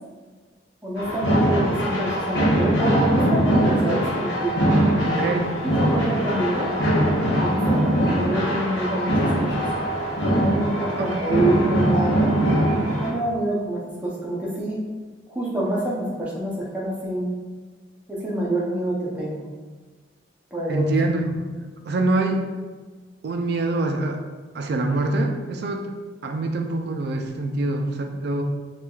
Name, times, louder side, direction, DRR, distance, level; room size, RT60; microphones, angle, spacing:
voice 1, 0.8-4.6 5.6-6.7 7.4-9.5 10.4-12.2 13.0-14.8 15.3-17.3 18.1-19.4 20.5-20.8, right 1 dB, 5° right, -6 dB, 0.6 m, -26 dB
sound 1, 1.0-13.1, equal, 65° left, 0.8 m, -22 dB
voice 2, 5.1-5.6 11.0-11.1 20.7-22.5 23.2-24.2 24.5-25.9 26.2-28.4, right 2 dB, 55° right, 4 dB, 0.3 m, -25 dB
4.4 x 2.3 x 2.3 m, 1.4 s
head